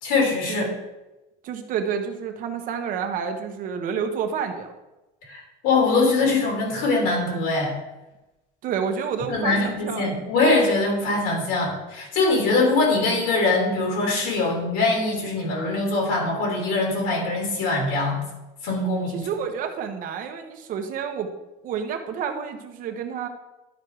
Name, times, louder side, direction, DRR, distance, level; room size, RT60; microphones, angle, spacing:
voice 1, 0.0-0.7 5.3-7.7 9.3-18.2 18.6-19.2, left 3 dB, 85° left, -1 dB, 3.2 m, -22 dB
voice 2, 1.4-4.7 8.6-10.1 19.1-21.3 21.6-23.3, right 7 dB, 50° right, 6 dB, 1.2 m, -29 dB
11.5 x 4.7 x 4.8 m, 1.0 s
cardioid pair, 125°, 17 cm